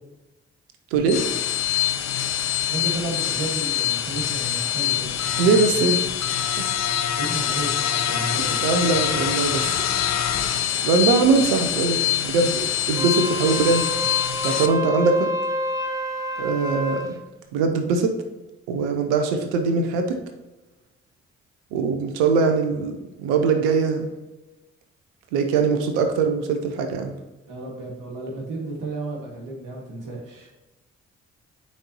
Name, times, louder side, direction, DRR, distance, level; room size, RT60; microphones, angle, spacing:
sound 1, 0.9-14.7, left 11 dB, 55° left, 0.7 m, -25 dB
voice 1, 2.7-5.1 7.1-7.8 8.1-8.6 27.5-30.5, right 2 dB, 70° right, -2 dB, 2.0 m, -32 dB
voice 2, 5.4-6.0 6.6-6.7 8.6-9.7 10.8-12.0 12.2-13.8 14.4-15.3 16.4-17.1 17.5-18.1 18.7-20.2 21.7-24.1 25.3-27.1, right 4 dB, 85° right, 6 dB, 0.6 m, -21 dB
Wind instrument woodwind instrument, 12.9-17.1, equal, 10° right, 1.2 m, -28 dB
9.0 x 4.2 x 2.9 m, 1.1 s
hypercardioid pair, 40°, 33 cm